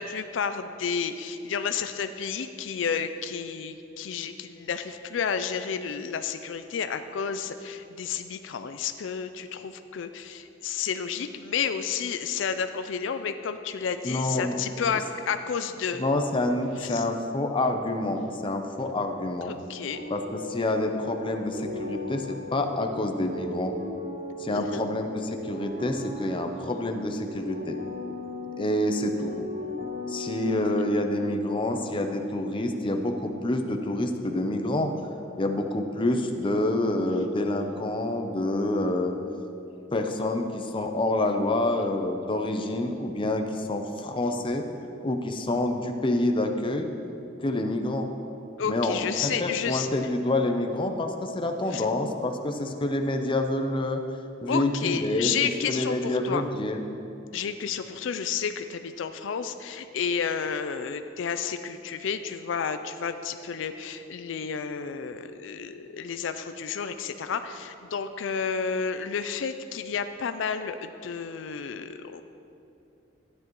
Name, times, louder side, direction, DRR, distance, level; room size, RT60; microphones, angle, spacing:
voice 1, 0.0-16.1 16.8-17.1 19.5-20.0 24.5-24.8 48.6-49.9 51.7-51.9 54.5-56.4 57.3-72.2, left 6 dB, 80° left, 9 dB, 0.4 m, -31 dB
voice 2, 14.0-14.5 16.0-19.5 20.1-23.8 24.4-27.8 28.6-29.4 30.1-34.9 35.4-39.1 39.9-44.6 45.0-46.9 47.4-48.1 48.6-54.0 54.4-55.3 55.6-56.8, left 1 dB, 25° left, 5 dB, 0.6 m, -27 dB
sound 1, 19.9-31.6, left 2 dB, 50° right, 1.8 m, -38 dB
13.0 x 9.7 x 3.0 m, 2.8 s
head